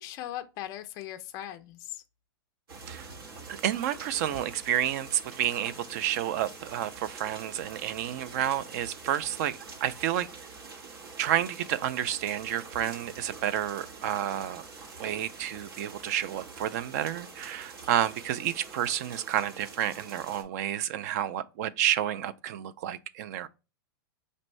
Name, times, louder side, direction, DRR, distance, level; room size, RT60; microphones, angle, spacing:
voice 1, 0.0-2.0, left 13 dB, 25° left, 0.4 m, -39 dB
sound 1, 2.7-20.4, right 4 dB, 70° right, 1.5 m, -46 dB
voice 2, 3.5-10.3 11.2-14.6 15.0-23.5, right 11 dB, 40° right, 0.4 m, -30 dB
5.2 x 2.6 x 3.1 m
supercardioid pair, 155°, 13 cm